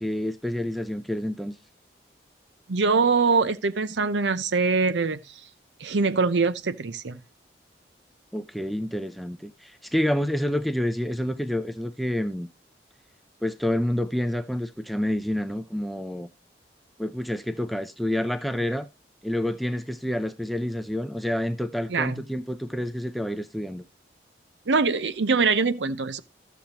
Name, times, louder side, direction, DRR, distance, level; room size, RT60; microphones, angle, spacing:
voice 1, 0.0-1.5 8.3-12.5 13.4-16.3 17.0-18.9 19.2-23.8, left 1 dB, ahead, 0.5 m, -28 dB
voice 2, 2.7-5.2 5.8-7.2 21.9-22.2 24.7-26.2, right 4 dB, 85° right, 0.7 m, -23 dB
13.0 x 7.0 x 2.9 m
head